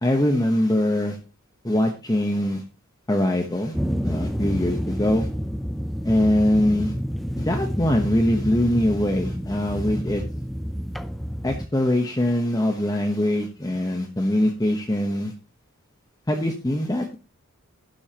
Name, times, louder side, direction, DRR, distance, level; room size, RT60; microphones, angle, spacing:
voice 1, 0.0-1.2 1.6-2.6 3.1-3.7 4.0-5.3 6.0-6.9 7.4-10.2 11.4-15.3 16.3-17.2, left 1 dB, 15° left, 3 dB, 1.0 m, -22 dB
sound 1, 3.7-11.7, equal, ahead, 0.5 m, -29 dB
12.0 x 10.5 x 2.9 m, 0.31 s
head